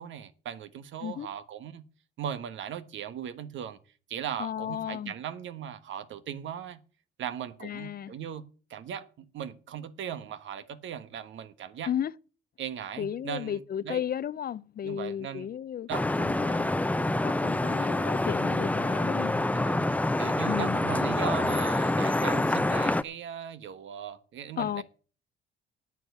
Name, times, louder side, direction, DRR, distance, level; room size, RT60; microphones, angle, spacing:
voice 1, 0.0-1.9 2.2-3.8 4.1-6.8 7.2-8.4 8.7-11.9 12.6-14.0 14.8-15.5 15.9-16.6 17.7-17.9 19.5-19.8 20.2-24.8, right 9 dB, 75° right, 1.3 m, -38 dB
voice 2, 4.4-5.1 7.6-8.1 11.9-12.1 13.0-15.9 16.2-16.7 17.2-19.3 20.5-20.8 24.6-24.8, left 9 dB, 50° left, 0.6 m, -34 dB
Vehicle horn car horn honking / Traffic noise roadway noise, 15.9-23.0, left 2 dB, 5° left, 0.6 m, -26 dB
9.3 x 8.5 x 8.1 m
cardioid pair, 90°, 20 cm